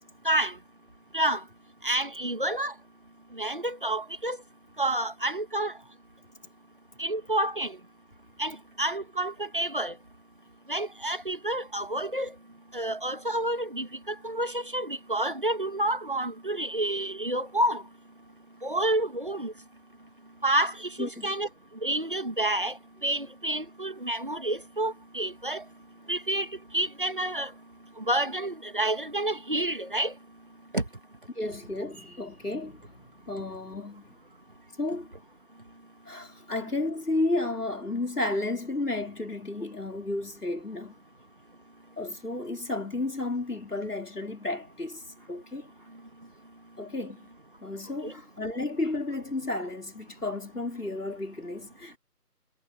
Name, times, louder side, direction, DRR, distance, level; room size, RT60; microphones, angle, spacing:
voice 1, 0.2-0.6 1.1-1.4 1.8-2.7 3.4-4.4 4.8-5.7 7.0-7.8 8.4-9.9 10.7-12.3 12.7-17.8 18.6-19.5 20.4-21.5 21.8-25.6 26.1-26.5 26.7-27.5 28.0-30.1 30.7-30.8 48.0-48.1, right 1 dB, 35° right, 2.0 m, -29 dB
voice 2, 21.0-21.4 31.4-34.2 34.8-35.1 36.1-41.0 42.0-45.7 46.8-47.3 47.6-52.0, left 2 dB, 70° left, 5.3 m, -32 dB
figure-of-eight pair, 165°, 47 cm